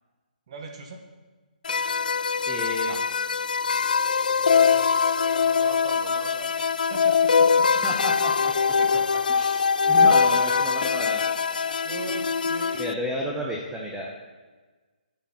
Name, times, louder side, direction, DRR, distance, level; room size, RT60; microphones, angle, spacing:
voice 1, 0.5-1.0 4.4-7.7 8.5-9.2 9.8-11.4 11.8-12.9, right 4 dB, 40° right, 3 dB, 1.6 m, -41 dB
sound 1, 1.7-12.9, left 6 dB, 65° left, 0.4 m, -22 dB
voice 2, 2.5-3.0 7.8-8.8 9.3-9.6 9.9-11.2 12.7-14.1, equal, 5° right, -3 dB, 1.2 m, -32 dB
10.5 x 7.9 x 5.9 m, 1.3 s
figure-of-eight pair, 140°, 5 cm